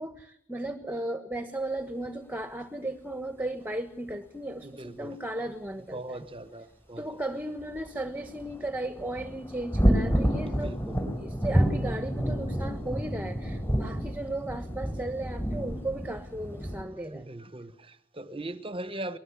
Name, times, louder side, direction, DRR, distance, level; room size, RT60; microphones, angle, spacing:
voice 1, 0.0-6.3 7.0-17.3, right 1 dB, 10° right, 1.4 m, -36 dB
voice 2, 4.6-5.2 5.9-7.1 10.5-11.0 17.1-19.2, right 1 dB, 25° right, 1.2 m, -40 dB
sound 1, 7.6-16.8, equal, 10° left, 5.5 m, -29 dB
23.0 x 21.0 x 9.9 m
head